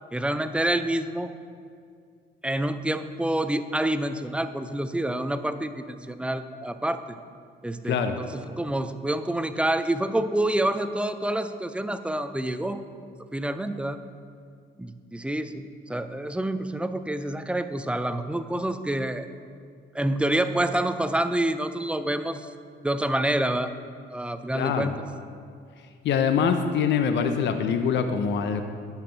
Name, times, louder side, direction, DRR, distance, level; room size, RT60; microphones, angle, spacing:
voice 1, 0.1-1.3 2.4-7.0 7.6-12.8 13.3-14.0 14.8-19.3 19.9-22.5 22.8-23.7 24.1-24.9, right 1 dB, 5° right, 10 dB, 0.4 m, -27 dB
voice 2, 7.8-8.2 24.5-25.0 26.0-28.6, left 6 dB, 65° left, 7 dB, 0.6 m, -24 dB
10.5 x 5.9 x 4.5 m, 2.3 s
cardioid pair, 90°, 20 cm